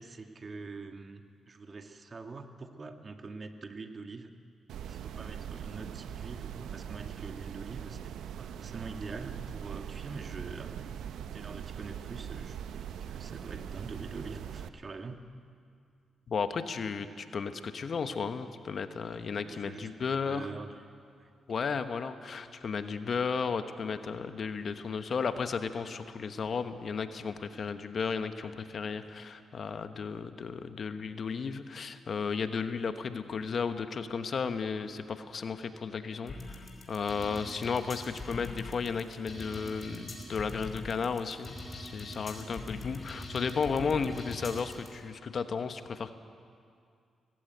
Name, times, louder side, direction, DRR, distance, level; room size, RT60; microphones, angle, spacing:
voice 1, 0.0-4.3 4.8-15.2 19.5-20.7 21.2-21.3, right 3 dB, 45° right, 6 dB, 1.6 m, -44 dB
sound 1, 4.7-14.7, right 9 dB, 85° right, 0.7 m, -41 dB
voice 2, 16.3-20.5 21.5-46.1, left 5 dB, 60° left, 9 dB, 1.1 m, -34 dB
sound 2, 36.3-44.9, left 2 dB, 40° left, 4.8 m, -42 dB
18.5 x 15.5 x 9.2 m, 2.3 s
supercardioid pair, 55°, 0 cm